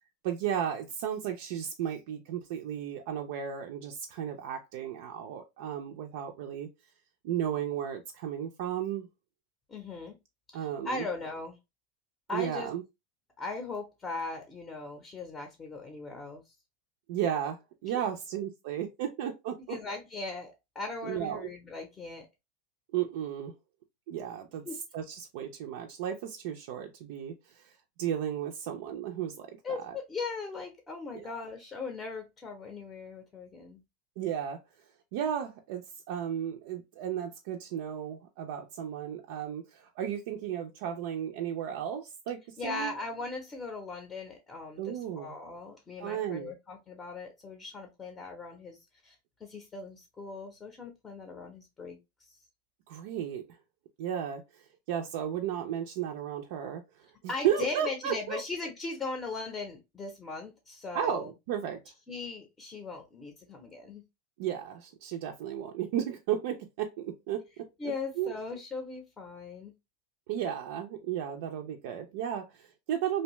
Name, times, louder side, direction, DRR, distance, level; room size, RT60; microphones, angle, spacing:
voice 1, 0.2-6.7 7.2-9.1 10.5-11.1 12.3-12.8 17.1-19.8 21.0-21.5 22.9-23.5 24.1-24.6 24.9-30.0 31.1-31.4 34.2-34.6 35.1-42.9 44.8-45.3 46.0-46.5 52.9-53.6 54.0-58.4 60.9-61.8 64.4-67.7 68.2-68.3 70.3-73.2, right 9 dB, 65° right, 0.4 m, -34 dB
voice 2, 9.7-10.1 10.5-11.6 12.3-12.7 13.4-16.5 19.7-22.3 24.6-24.8 29.6-33.8 42.6-48.8 49.0-52.0 57.3-61.3 62.1-64.0 67.8-69.7, left 3 dB, 20° left, 0.6 m, -39 dB
2.6 x 2.2 x 2.9 m
supercardioid pair, 135°, 0 cm